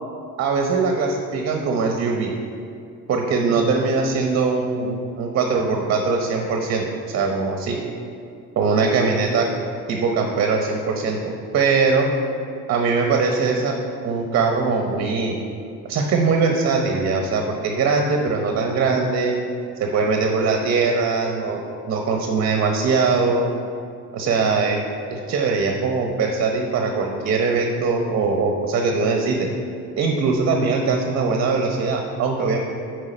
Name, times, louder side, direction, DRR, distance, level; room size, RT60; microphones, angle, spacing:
voice 1, 0.4-2.3 3.1-7.8 8.6-9.4 9.9-12.1 12.7-13.8 14.0-15.4 15.8-19.3 19.8-23.5 24.1-24.8 25.1-29.5 30.0-32.6, right 4 dB, 45° right, 2 dB, 0.8 m, -21 dB
8.8 x 4.7 x 5.1 m, 2.5 s
cardioid pair, 130°, 30 cm